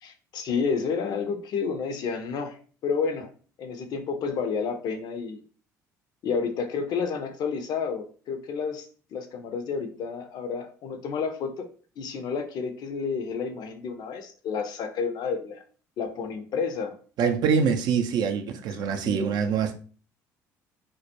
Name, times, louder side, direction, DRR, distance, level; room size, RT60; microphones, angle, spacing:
voice 1, 0.0-2.6 2.8-3.3 3.6-5.4 6.2-11.7 12.0-15.6 16.0-17.0 19.0-19.3, left 5 dB, 55° left, 0.5 m, -30 dB
voice 2, 17.2-19.7, right 6 dB, 55° right, 0.4 m, -24 dB
2.2 x 2.1 x 2.8 m
hypercardioid pair, 55°, 9 cm